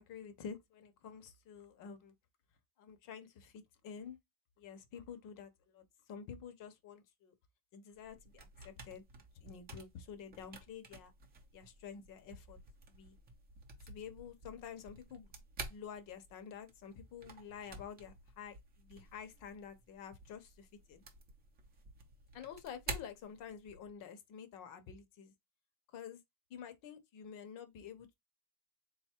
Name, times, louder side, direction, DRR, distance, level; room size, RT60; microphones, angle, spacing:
voice 1, 0.0-2.1 2.8-4.2 4.6-7.3 7.7-9.0 9.4-11.1 11.5-12.6 12.9-13.2 13.9-15.3 15.7-21.0 22.3-25.3 25.9-26.2 26.5-28.1, left 7 dB, 40° left, 0.9 m, -49 dB
sound 1, 7.9-23.9, right 3 dB, 20° right, 0.7 m, -51 dB
3.8 x 2.4 x 4.3 m
cardioid pair, 160°, 48 cm